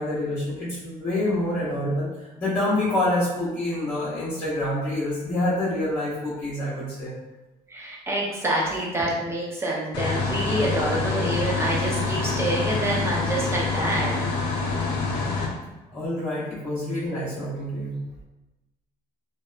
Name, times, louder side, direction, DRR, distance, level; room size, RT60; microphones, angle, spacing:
voice 1, 0.0-7.1 15.9-18.0, left 1 dB, 20° left, -13 dB, 0.9 m, -27 dB
voice 2, 7.7-14.1, right 1 dB, 15° right, -3 dB, 0.6 m, -27 dB
sound 1, 9.9-15.5, left 4 dB, 80° left, 0.5 m, -26 dB
2.7 x 2.1 x 2.3 m, 1.0 s
cardioid pair, 110°, 17 cm